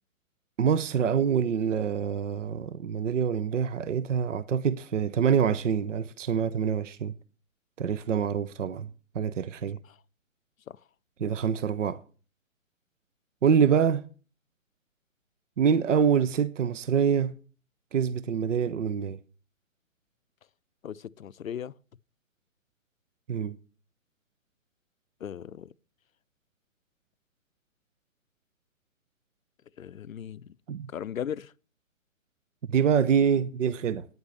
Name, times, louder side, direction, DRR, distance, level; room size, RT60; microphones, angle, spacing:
voice 1, 0.6-7.1 7.8-8.9 9.1-9.8 11.2-12.0 13.4-14.0 15.6-17.4 17.9-19.2 23.3-23.6 30.7-30.9 32.7-34.1, right 7 dB, 65° right, 0.7 m, -25 dB
voice 2, 20.8-21.7 25.2-25.7 29.8-30.5 30.9-31.5, left 9 dB, 85° left, 0.5 m, -37 dB
9.5 x 8.1 x 6.8 m
figure-of-eight pair, 135°, 40 cm